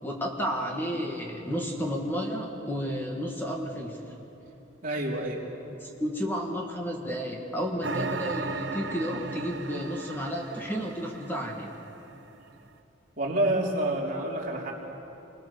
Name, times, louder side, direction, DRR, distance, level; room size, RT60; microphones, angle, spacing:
voice 1, 0.0-4.0 5.8-11.8, equal, 10° left, 0 dB, 1.8 m, -32 dB
voice 2, 4.8-5.4 13.2-14.7, right 1 dB, 45° right, -2 dB, 3.4 m, -28 dB
sound 1, 7.8-12.3, right 3 dB, 70° right, 1.1 m, -36 dB
27.0 x 20.5 x 6.9 m, 2.9 s
head